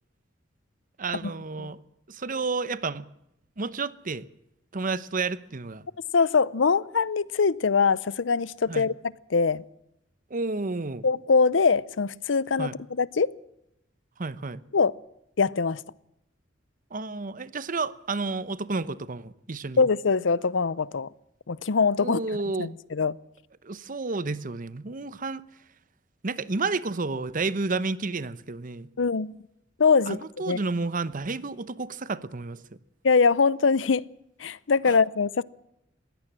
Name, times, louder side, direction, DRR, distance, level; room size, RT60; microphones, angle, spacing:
voice 1, 1.0-1.8 2.1-3.1 3.6-4.3 4.7-5.9 8.7-8.9 10.3-11.1 12.6-12.8 14.2-14.6 16.9-19.8 22.0-22.7 23.6-25.4 26.2-28.9 30.1-32.6 34.9-35.0, right 3 dB, 45° right, 0.9 m, -31 dB
voice 2, 6.1-9.6 11.0-13.3 14.7-14.9 15.4-15.8 19.8-21.1 21.5-22.2 22.6-23.2 29.0-29.4 29.8-30.6 33.0-34.1 34.4-35.4, left 5 dB, 85° left, 0.7 m, -23 dB
21.0 x 16.5 x 7.5 m
head